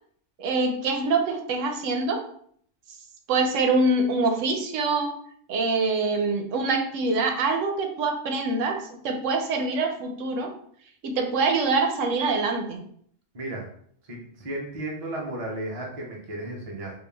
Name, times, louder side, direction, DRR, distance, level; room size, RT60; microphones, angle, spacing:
voice 1, 0.4-2.2 3.3-5.1 5.5-8.8 9.0-10.5 11.0-12.8, right 3 dB, 80° right, 4 dB, 1.0 m, -24 dB
voice 2, 14.1-16.9, right 1 dB, 40° right, -1 dB, 0.6 m, -34 dB
3.6 x 2.4 x 3.3 m, 0.63 s
omnidirectional pair, 1.3 m